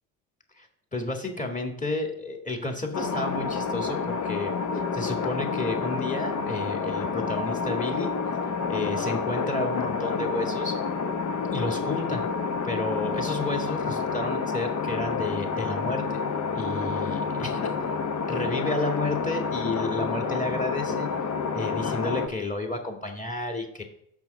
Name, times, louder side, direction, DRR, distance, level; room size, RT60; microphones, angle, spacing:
voice 1, 0.6-8.1 8.7-10.8 11.5-12.2 12.6-16.0 16.5-17.9 18.3-21.1 21.5-23.8, left 2 dB, 15° left, 3 dB, 2.0 m, -31 dB
sound 1, 2.9-22.3, left 5 dB, 40° left, 1.1 m, -29 dB
6.1 x 5.4 x 6.5 m, 0.71 s
hypercardioid pair, 65°, 43 cm